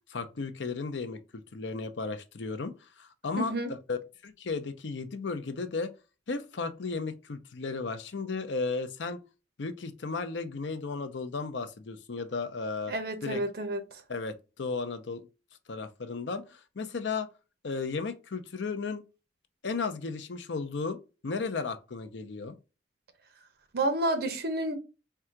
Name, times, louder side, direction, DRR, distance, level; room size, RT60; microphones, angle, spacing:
voice 1, 0.1-1.2 1.5-3.5 3.9-4.0 4.2-5.9 6.3-9.2 9.6-12.9 13.2-13.4 14.1-15.3 15.7-17.3 17.6-19.1 19.6-21.0 21.2-22.6, left 4 dB, 75° left, 0.6 m, -34 dB
voice 2, 3.4-3.7 12.9-13.8 23.7-24.8, right 1 dB, 60° right, 0.8 m, -30 dB
3.7 x 2.3 x 4.4 m
head